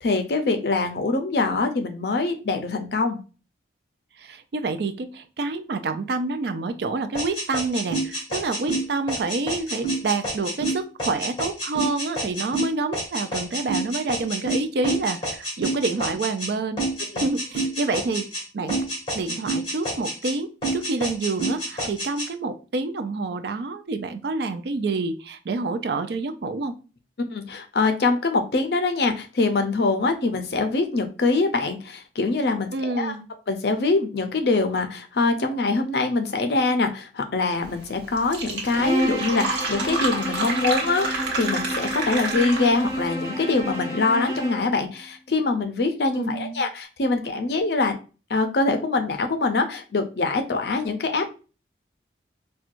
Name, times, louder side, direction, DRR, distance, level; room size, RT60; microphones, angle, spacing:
voice 1, 0.0-3.2 17.1-17.3 27.2-33.1 33.5-48.0 48.3-51.3, left 3 dB, 60° left, 6 dB, 0.5 m, -24 dB
voice 2, 4.2-16.8 17.2-18.8 19.1-26.8 32.7-33.3 46.1-46.6, right 3 dB, 65° right, 9 dB, 0.4 m, -28 dB
sound 1, 7.1-16.5 16.8-18.4 18.7-20.3 20.6-22.3, right 2 dB, 25° left, 1.8 m, -28 dB
Fill (with liquid), 37.9-38.0 38.2-42.9, right 3 dB, 80° right, 1.0 m, -29 dB
Bowed string instrument, 38.7-44.7, equal, 15° right, 1.0 m, -29 dB
4.3 x 2.3 x 2.5 m, 0.34 s
head